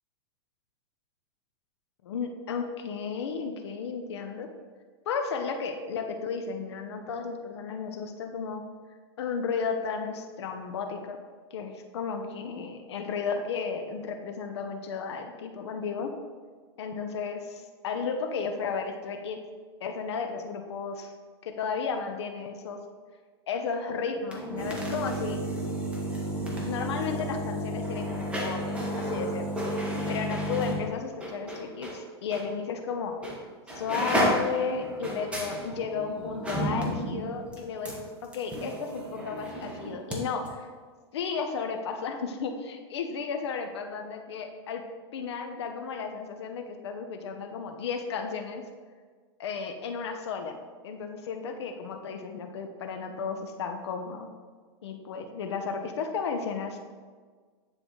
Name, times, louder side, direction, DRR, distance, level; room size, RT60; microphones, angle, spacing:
voice 1, 2.0-4.5 5.1-8.6 9.2-11.2 11.5-16.1 16.8-19.4 19.8-21.1 21.4-22.8 23.5-25.4 26.6-29.4 30.1-33.2 33.7-40.7 41.1-44.8 45.1-48.6 49.4-50.6 50.8-54.3 54.8-56.8, left 5 dB, 80° left, 5 dB, 0.7 m, -33 dB
sound 1, 24.2-32.0 32.3-32.5 33.2-33.4 33.7-40.2 40.4-40.5, equal, 10° right, 1.3 m, -32 dB
9.6 x 3.8 x 3.1 m, 1.5 s
hypercardioid pair, 125°, 14 cm